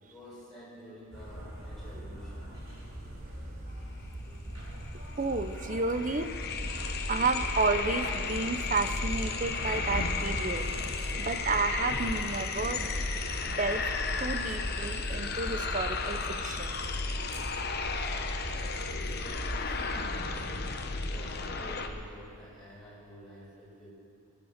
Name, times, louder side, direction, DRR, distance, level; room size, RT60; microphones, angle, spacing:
voice 1, 0.0-2.5 18.8-20.7 21.1-23.9, left 1 dB, ahead, -9 dB, 5.3 m, -49 dB
sound 1, 1.1-20.5, right 1 dB, 65° right, 5.1 m, -42 dB
sound 2, 4.9-5.0 5.2-21.9, left 4 dB, 45° left, 0.9 m, -34 dB
voice 2, 5.2-6.3 7.1-10.7 11.2-13.0 13.4-13.8 14.2-16.8, right 3 dB, 35° right, 10 dB, 0.6 m, -31 dB
sound 3, 7.2-10.4 11.8-12.1, equal, 85° left, 1.8 m, -40 dB
21.5 x 9.7 x 6.6 m, 2.4 s
head